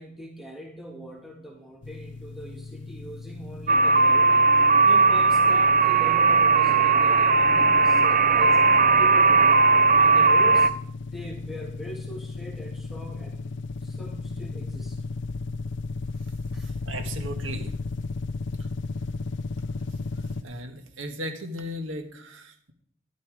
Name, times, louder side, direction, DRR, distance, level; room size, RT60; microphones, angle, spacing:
voice 1, 0.0-4.4 4.8-8.6 9.0-9.6 10.0-10.7 11.1-13.5 13.8-15.0 16.5-16.7, equal, ahead, -1 dB, 2.1 m, -41 dB
sound 1, 1.8-20.4, left 3 dB, 65° left, 0.5 m, -35 dB
sound 2, 3.7-10.7, right 4 dB, 40° right, 0.6 m, -18 dB
voice 2, 16.5-17.8 20.4-22.7, equal, 80° right, 6 dB, 1.7 m, -36 dB
13.0 x 11.5 x 4.9 m, 0.63 s
head